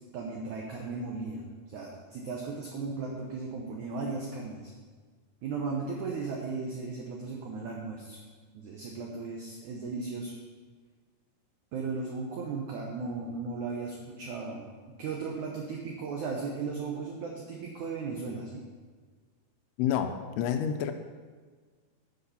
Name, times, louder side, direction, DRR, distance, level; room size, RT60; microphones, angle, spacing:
voice 1, 0.1-4.7 5.4-8.2 8.5-10.3 11.7-14.6 15.0-18.6, right 4 dB, 85° right, 0 dB, 1.7 m, -36 dB
voice 2, 19.8-20.9, left 9 dB, 80° left, 8 dB, 2.5 m, -29 dB
9.8 x 6.5 x 5.7 m, 1.5 s
omnidirectional pair, 4.8 m